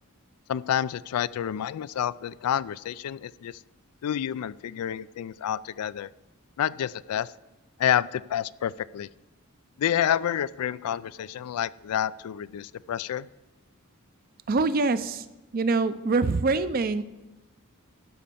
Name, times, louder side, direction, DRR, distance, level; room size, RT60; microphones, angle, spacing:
voice 1, 0.5-3.6 4.0-6.1 6.6-7.3 7.8-9.1 9.8-13.3, left 10 dB, 90° left, 18 dB, 0.3 m, -29 dB
voice 2, 14.5-15.3 15.5-17.0, right 3 dB, 40° right, 13 dB, 0.5 m, -24 dB
12.5 x 5.2 x 6.8 m, 1.1 s
head